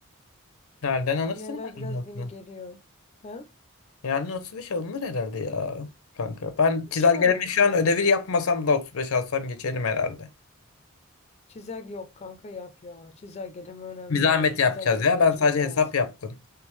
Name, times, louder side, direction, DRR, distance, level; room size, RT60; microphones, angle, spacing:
voice 1, 0.8-2.3 4.0-5.9 6.2-10.3 14.1-16.4, left 5 dB, 85° left, 0.6 m, -24 dB
voice 2, 1.3-2.8 3.2-3.5 7.0-7.5 11.5-16.0, left 3 dB, 30° left, 0.3 m, -40 dB
3.5 x 3.2 x 3.0 m
head